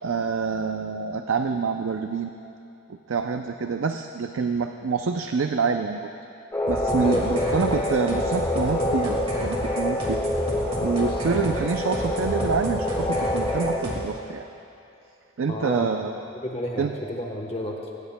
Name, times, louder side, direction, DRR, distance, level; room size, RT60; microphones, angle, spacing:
voice 1, 0.0-2.3 2.9-6.1 6.7-10.2 10.8-14.5 15.4-16.2 16.8-16.9, right 5 dB, 70° right, 6 dB, 0.5 m, -27 dB
sound 1, 6.5-13.8, left 1 dB, 15° left, 1.9 m, -27 dB
sound 2, 6.7-14.0, equal, 30° right, 2.0 m, -32 dB
voice 2, 7.0-7.4 15.5-15.9 16.4-16.9 17.2-17.9, left 1 dB, 30° left, 0 dB, 1.0 m, -30 dB
21.5 x 17.5 x 2.2 m, 2.7 s
head